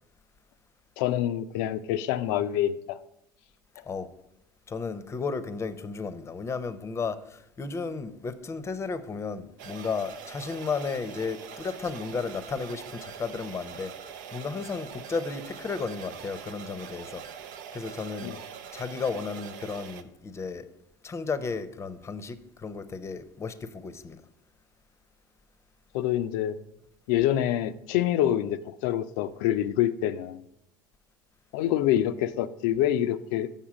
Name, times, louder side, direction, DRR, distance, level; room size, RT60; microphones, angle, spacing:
voice 1, 1.0-3.0 3.8-3.9 18.2-18.4 25.9-26.5 27.1-30.4 31.5-33.5, left 12 dB, 70° left, 0.4 m, -26 dB
voice 2, 4.7-17.2 17.7-18.3 18.7-20.7 21.0-24.2, left 4 dB, 25° left, 0.7 m, -34 dB
sound 1, 9.6-20.0, right 8 dB, 75° right, 0.5 m, -43 dB
7.3 x 5.5 x 4.9 m
hypercardioid pair, 80°, 11 cm